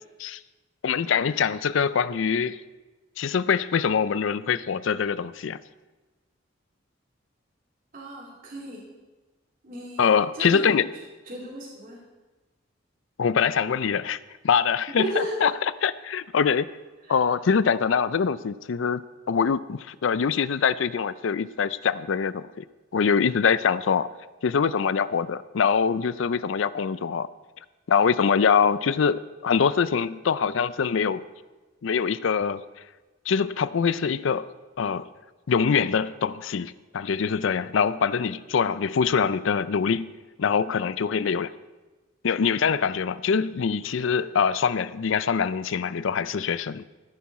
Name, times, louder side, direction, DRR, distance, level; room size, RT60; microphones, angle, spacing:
voice 1, 0.8-2.6 3.2-5.6 10.0-10.9 13.2-14.2 14.4-15.5 15.8-16.7 17.1-19.0 19.3-22.6 22.9-24.1 24.4-27.3 27.9-31.2 31.8-32.6 33.3-34.5 34.8-35.1 35.5-40.1 40.4-41.5 42.2-46.8, left 6 dB, 75° left, 0.4 m, -24 dB
voice 2, 7.9-8.8 9.6-10.0 10.3-10.7 11.3-12.0 15.0-15.4 17.1-17.2, equal, 45° right, 3.0 m, -33 dB
14.0 x 10.5 x 4.2 m
head